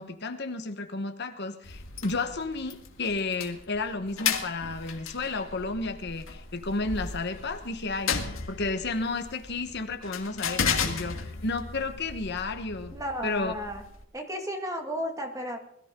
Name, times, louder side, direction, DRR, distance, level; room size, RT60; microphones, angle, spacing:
voice 1, 0.0-8.2 8.5-12.9 13.2-13.5, left 3 dB, 55° left, 7 dB, 1.2 m, -32 dB
sound 1, 1.6-14.0, left 6 dB, 80° left, 1.9 m, -35 dB
voice 2, 12.9-13.8 14.1-15.6, equal, 15° right, 3 dB, 2.2 m, -33 dB
21.0 x 14.0 x 3.8 m, 0.69 s
head